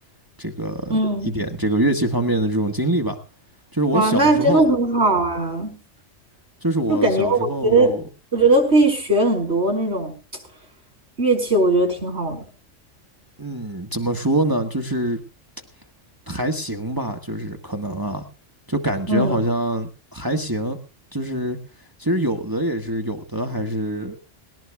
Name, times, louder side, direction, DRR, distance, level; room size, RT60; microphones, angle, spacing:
voice 1, 0.4-0.9 1.3-3.2 3.7-4.6 6.6-8.0 13.4-15.2 16.3-18.2 18.7-20.8 21.1-21.6 22.0-24.3, right 1 dB, 15° right, 3 dB, 1.6 m, -24 dB
voice 2, 0.9-1.4 3.9-5.8 6.9-8.0 8.3-10.1 11.2-12.4 19.1-19.4, right 2 dB, 60° right, 2 dB, 5.5 m, -19 dB
19.5 x 18.5 x 2.3 m, 0.33 s
omnidirectional pair, 1.3 m